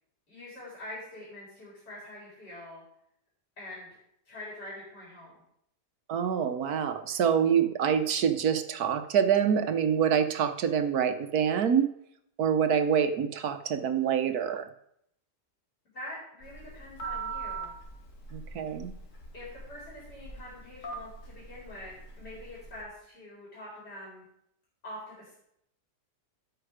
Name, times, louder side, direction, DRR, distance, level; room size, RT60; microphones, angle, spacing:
voice 1, 0.3-2.8 3.6-4.0 4.3-5.4 15.9-17.7 19.3-24.3 24.8-25.3, left 1 dB, 80° left, -6 dB, 5.2 m, -45 dB
voice 2, 6.1-11.9 12.4-14.7 18.3-18.9, right 8 dB, 65° right, 9 dB, 1.4 m, -26 dB
Telephone, 16.4-22.8, right 4 dB, 50° left, 2.4 m, -42 dB
13.0 x 9.0 x 5.0 m, 0.74 s
omnidirectional pair, 1.8 m